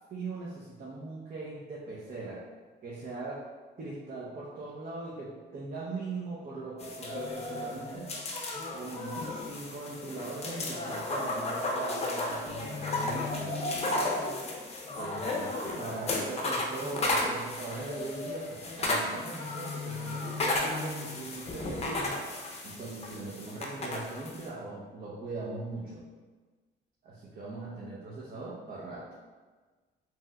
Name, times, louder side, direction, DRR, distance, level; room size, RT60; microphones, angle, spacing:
voice 1, 0.1-2.4 2.8-3.4 3.8-8.1 8.7-13.6 15.0-22.2 22.6-26.0 27.0-29.1, right 3 dB, 45° right, -5 dB, 0.6 m, -40 dB
sound 1, 6.8-24.5, left 2 dB, 30° left, 0.6 m, -34 dB
3.4 x 2.9 x 2.2 m, 1.4 s
cardioid pair, 90°, 20 cm